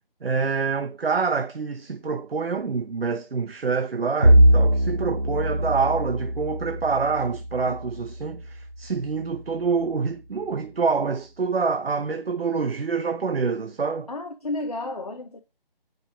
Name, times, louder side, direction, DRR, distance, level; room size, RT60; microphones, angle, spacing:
voice 1, 0.2-14.1, right 5 dB, 80° right, 0.9 m, -26 dB
Bowed string instrument, 4.2-8.8, equal, 40° right, 0.5 m, -21 dB
voice 2, 14.1-15.4, left 2 dB, 40° left, 1.0 m, -32 dB
9.4 x 5.4 x 4.9 m
figure-of-eight pair, 180°, 30 cm